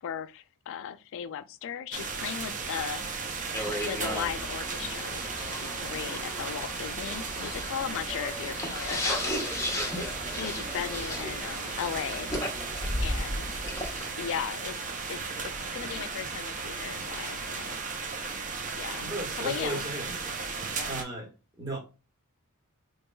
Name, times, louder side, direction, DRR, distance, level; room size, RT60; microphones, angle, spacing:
voice 1, 0.0-3.0 3.7-12.3 13.0-13.5 14.2-14.8 15.1-17.8 18.7-19.9 20.7-21.1, left 8 dB, 60° left, 0.3 m, -37 dB
sound 1, 1.9-21.0, right 4 dB, 35° right, 0.6 m, -36 dB
sound 2, 3.5-14.1, left 1 dB, 15° left, 1.0 m, -35 dB
voice 2, 19.0-20.1 20.8-21.3 21.6-21.8, right 2 dB, 20° right, 1.4 m, -35 dB
4.6 x 2.9 x 2.2 m
head